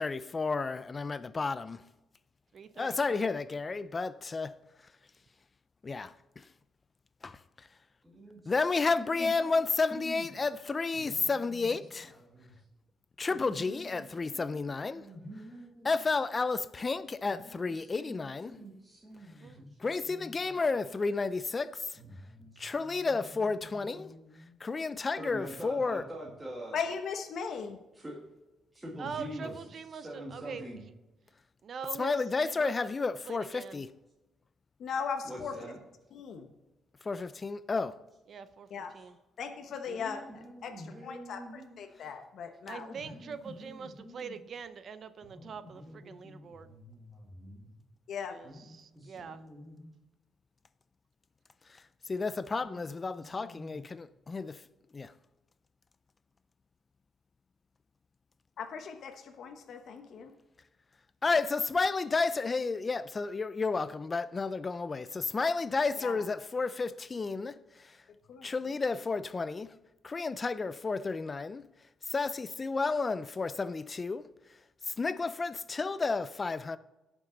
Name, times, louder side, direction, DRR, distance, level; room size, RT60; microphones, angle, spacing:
voice 1, 0.0-1.8 2.8-4.5 5.8-6.5 7.2-7.4 8.5-12.1 13.2-15.0 15.8-18.5 19.8-22.0 22.6-24.1 24.6-26.0 32.0-33.9 37.0-38.0 51.7-51.8 52.1-54.6 54.9-55.1 61.2-68.0 68.4-69.7 70.0-71.6 72.1-74.3 74.9-76.8, left 4 dB, 25° left, 0.5 m, -31 dB
voice 2, 2.5-3.4 19.4-19.6 29.0-30.9 31.6-32.8 33.2-33.8 38.3-38.7 38.9-39.1 42.7-46.7 48.3-49.5, right 6 dB, 50° right, 0.6 m, -43 dB
voice 3, 8.0-10.3 10.9-12.6 13.3-14.6 14.9-15.9 17.3-20.6 21.9-24.6 25.2-26.8 28.0-28.2 28.7-29.6 29.9-30.8 35.2-35.8 39.9-41.8 42.6-44.4 45.2-47.0 47.4-47.8 48.4-49.9 52.6-52.9 53.2-53.9, equal, 10° right, 1.9 m, -47 dB
voice 4, 26.7-27.8 34.8-35.6 36.1-36.5 38.7-38.9 39.4-40.2 40.6-42.9 48.1-48.4 58.6-60.3 66.0-66.3 68.3-68.8, left 6 dB, 60° left, 1.1 m, -38 dB
18.0 x 6.1 x 3.9 m
cardioid pair, 120°, 0 cm